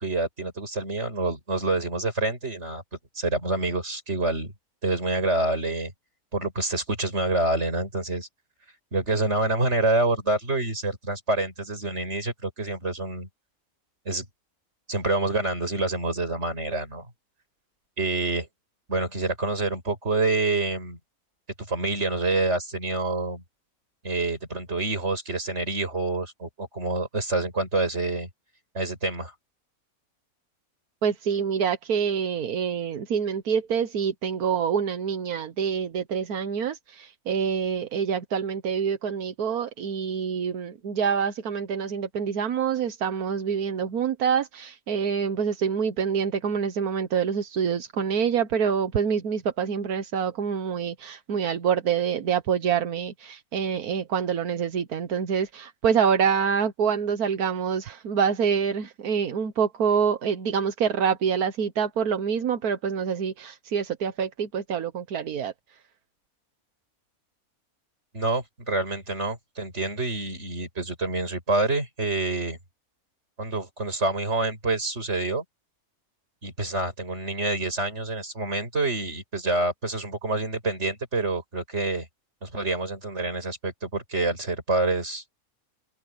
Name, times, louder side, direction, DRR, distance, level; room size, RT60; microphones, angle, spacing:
voice 1, 0.0-2.8 3.2-4.5 4.8-5.9 6.3-8.3 8.9-13.3 14.1-14.3 14.9-17.1 18.0-18.5 18.9-21.0 21.6-23.4 24.0-28.3 28.7-29.3 68.1-72.6 73.4-75.4 76.4-82.1 82.4-85.3, right 2 dB, 50° right, 5.9 m, -27 dB
voice 2, 31.0-65.5, right 7 dB, 85° right, 1.6 m, -26 dB
omnidirectional pair, 1.5 m